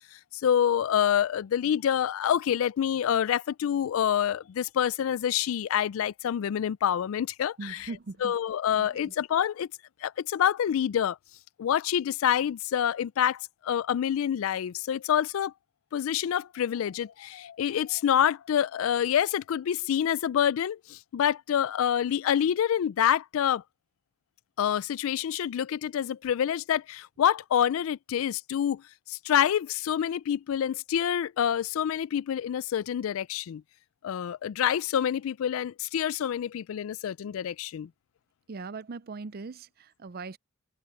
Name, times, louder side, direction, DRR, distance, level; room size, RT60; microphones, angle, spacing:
voice 1, 0.4-7.9 8.2-9.7 10.0-11.2 11.6-15.5 15.9-23.6 24.6-28.8 29.1-33.6 34.0-37.9, left 9 dB, 70° left, 0.3 m, -27 dB
voice 2, 7.6-8.3 8.8-9.1 38.5-40.4, right 4 dB, 45° right, 0.5 m, -40 dB
head